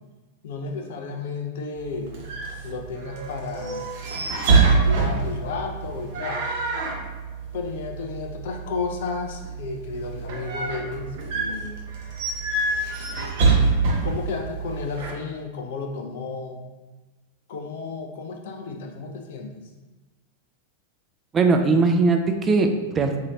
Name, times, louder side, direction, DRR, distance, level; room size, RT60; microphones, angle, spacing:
voice 1, 0.4-2.2 2.6-3.9 4.1-4.2 4.6-6.4 7.5-11.9 14.0-16.7 17.5-19.7, left 4 dB, 55° left, 3 dB, 0.5 m, -33 dB
sound 1, 1.8-15.1, right 4 dB, 50° right, 0.8 m, -25 dB
voice 2, 21.3-23.2, right 3 dB, 20° right, 5 dB, 0.4 m, -20 dB
3.8 x 2.7 x 3.1 m, 1.2 s
figure-of-eight pair, 90°, 0 cm